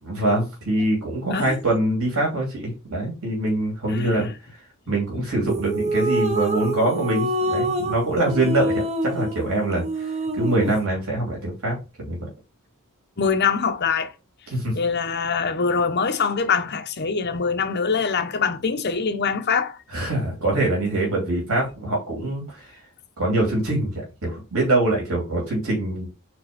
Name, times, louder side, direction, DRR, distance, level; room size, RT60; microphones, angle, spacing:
voice 1, 0.0-4.3 4.9-12.3 14.5-14.7 19.9-22.7 23.2-26.1, right 2 dB, 75° right, 2.4 m, -24 dB
voice 2, 3.9-4.3 4.9-5.5 13.2-14.1 14.7-19.8, left 5 dB, 50° left, 0.9 m, -24 dB
sound 1, 5.5-10.8, right 1 dB, 30° right, 0.7 m, -26 dB
4.4 x 4.2 x 5.1 m
head